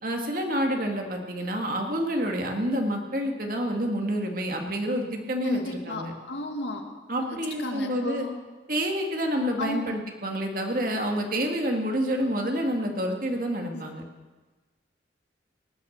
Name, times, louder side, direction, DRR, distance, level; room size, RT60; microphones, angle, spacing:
voice 1, 0.0-6.1 7.1-8.3 8.7-14.0, equal, 50° right, 2 dB, 2.0 m, -28 dB
voice 2, 5.4-8.5 9.6-9.8 13.7-13.8, left 1 dB, 85° left, 3 dB, 1.9 m, -34 dB
18.5 x 9.9 x 6.5 m, 1.3 s
head